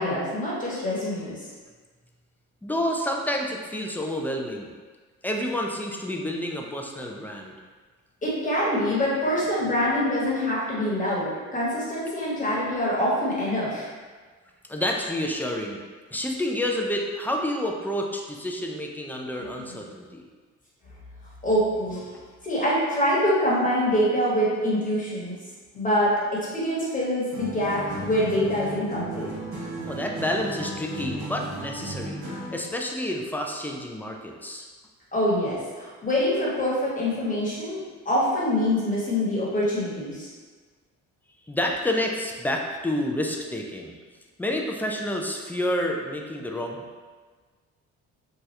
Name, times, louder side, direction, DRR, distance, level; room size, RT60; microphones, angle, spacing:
voice 1, 0.0-1.4 8.2-13.9 19.4-19.5 21.4-22.0 22.4-25.3 25.7-29.3 35.1-40.3, equal, 25° left, -7 dB, 1.2 m, -25 dB
voice 2, 2.6-4.7 5.2-7.5 14.7-15.8 16.1-20.2 29.8-32.2 32.5-34.6 41.5-43.9 44.4-46.8, left 1 dB, 5° left, 1 dB, 0.3 m, -29 dB
sound 1, 27.3-32.7, right 1 dB, 60° right, 1.2 m, -35 dB
2.8 x 2.3 x 3.1 m, 1.4 s
cardioid pair, 90°, 30 cm